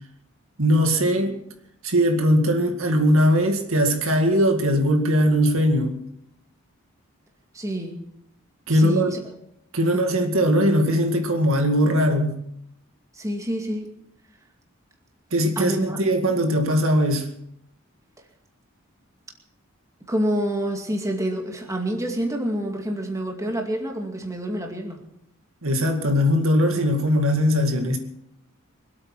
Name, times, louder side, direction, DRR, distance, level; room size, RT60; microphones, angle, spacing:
voice 1, 0.6-1.4 1.8-6.1 8.7-9.1 9.7-12.4 15.3-17.3 25.6-28.0, equal, 70° right, 5 dB, 2.1 m, -20 dB
voice 2, 7.5-8.0 8.7-9.2 9.8-10.0 13.1-13.9 15.6-16.0 20.1-25.0, right 1 dB, 15° right, 2 dB, 2.2 m, -27 dB
24.0 x 8.7 x 6.1 m, 0.77 s
head